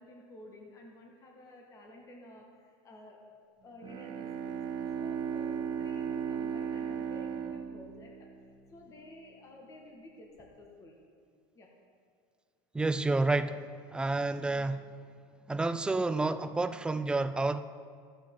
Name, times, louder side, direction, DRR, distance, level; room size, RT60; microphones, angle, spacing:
voice 1, 0.0-3.2 3.6-4.6 4.9-11.0 11.5-11.7, left 1 dB, 30° left, 0 dB, 1.7 m, -52 dB
Bowed string instrument, 3.8-9.0, right 7 dB, 40° right, 0.8 m, -36 dB
voice 2, 12.7-13.6 13.9-14.8 15.5-17.6, right 3 dB, 10° right, 12 dB, 0.4 m, -29 dB
15.0 x 8.8 x 3.8 m, 2.1 s
supercardioid pair, 130°, 12 cm